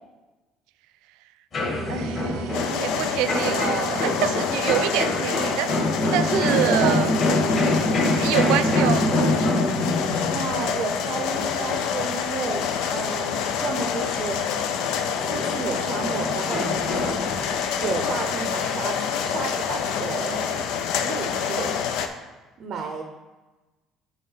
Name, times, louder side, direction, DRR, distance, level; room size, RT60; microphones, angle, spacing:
sound 1, 1.5-14.6 15.0-18.7 19.0-20.7, left 1 dB, 35° left, 2.1 m, -26 dB
voice 1, 1.9-5.8 6.1-7.1 8.1-9.1, right 13 dB, 90° right, 12 dB, 0.3 m, -26 dB
sound 2, 2.5-22.1, left 7 dB, 75° left, 0.5 m, -27 dB
voice 2, 6.1-7.1 10.3-12.6 12.9-14.4 15.2-17.2 17.8-20.5 21.0-21.8 22.6-23.0, right 4 dB, 45° right, 4 dB, 0.6 m, -31 dB
7.7 x 3.1 x 5.6 m, 1.2 s
cardioid pair, 155°, 0 cm